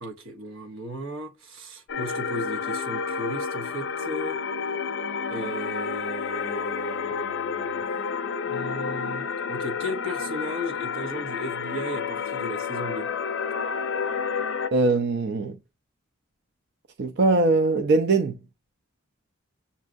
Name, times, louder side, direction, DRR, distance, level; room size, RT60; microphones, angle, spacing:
voice 1, 0.0-4.4 5.3-7.8 8.5-13.1, equal, 80° right, 1.0 m, -36 dB
sound 1, 1.9-14.7, left 5 dB, 60° left, 0.5 m, -30 dB
voice 2, 14.7-15.6 17.0-18.3, right 3 dB, 55° right, 0.5 m, -21 dB
7.2 x 2.7 x 2.5 m
head